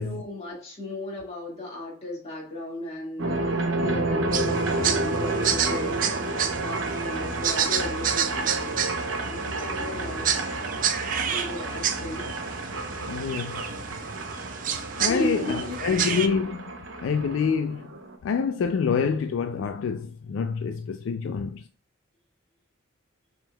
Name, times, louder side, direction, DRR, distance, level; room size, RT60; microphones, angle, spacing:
voice 1, 0.0-10.6 11.0-12.3 15.0-16.3, left 1 dB, 35° left, 1.8 m, -35 dB
sound 1, 3.2-18.2, right 2 dB, 70° right, 0.8 m, -30 dB
sound 2, 4.3-16.3, right 8 dB, 40° right, 0.4 m, -30 dB
voice 2, 13.1-13.6 15.0-16.6 17.0-17.9 18.2-21.6, left 6 dB, 70° left, 0.3 m, -27 dB
5.7 x 3.6 x 2.2 m
head